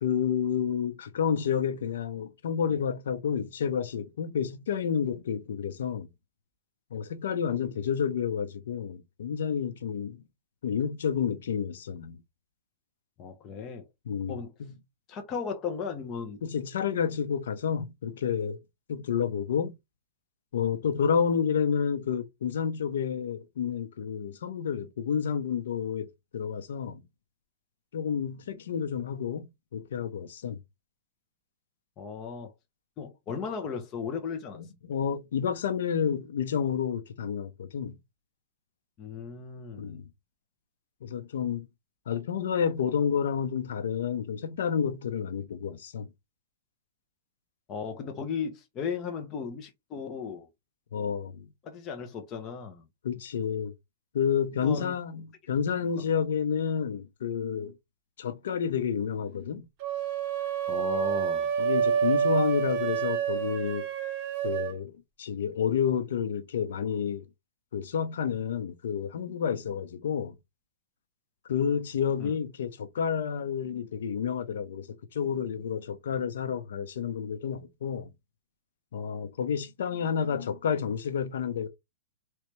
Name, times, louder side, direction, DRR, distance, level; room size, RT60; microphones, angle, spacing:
voice 1, 0.0-6.1 6.9-10.2 10.6-12.2 14.1-14.7 16.4-18.6 18.9-19.7 20.5-26.1 26.3-27.0 27.9-30.6 34.8-38.0 39.8-40.0 41.0-41.7 42.1-46.1 50.9-51.5 53.0-53.7 54.1-57.7 58.2-59.6 61.6-63.8 64.4-67.3 67.7-70.3 71.5-74.9 75.1-78.1 78.9-81.7, left 7 dB, 65° left, 0.7 m, -30 dB
voice 2, 13.2-13.9 14.3-14.5 15.1-16.4 32.0-32.5 33.0-34.6 39.0-40.0 47.7-50.5 51.6-52.9 54.6-54.9 60.7-61.5 72.2-72.3, left 6 dB, 20° left, 0.7 m, -36 dB
sound 1, 59.8-64.8, right 8 dB, 30° right, 0.9 m, -28 dB
3.2 x 3.1 x 3.0 m
hypercardioid pair, 175°, 0 cm